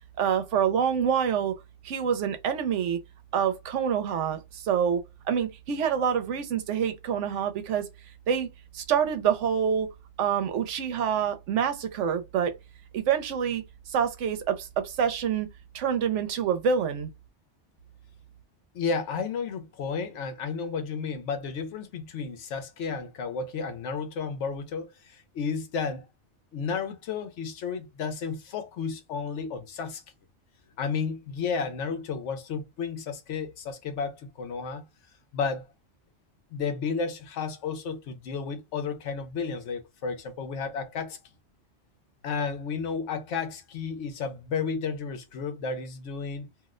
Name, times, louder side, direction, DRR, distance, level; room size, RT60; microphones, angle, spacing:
voice 1, 0.2-1.5 1.8-3.0 3.3-5.0 5.3-7.9 8.3-8.5 8.7-9.9 10.2-12.6 12.9-15.5 15.7-17.1, right 7 dB, 85° right, 1.0 m, -26 dB
voice 2, 18.7-26.1 26.5-30.0 30.8-34.8 35.3-35.6 36.5-41.2 42.2-46.5, left 5 dB, 85° left, 1.0 m, -32 dB
2.6 x 2.1 x 3.5 m
omnidirectional pair, 1.2 m